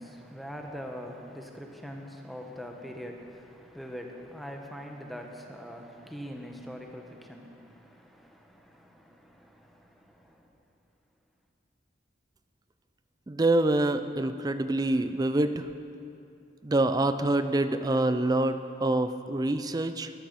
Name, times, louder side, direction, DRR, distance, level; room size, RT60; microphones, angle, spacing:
voice 1, 0.0-10.5, equal, ahead, 2 dB, 1.0 m, -43 dB
voice 2, 13.3-15.7 16.6-20.1, right 2 dB, 20° right, 11 dB, 0.4 m, -26 dB
13.0 x 12.0 x 5.3 m, 2.6 s
head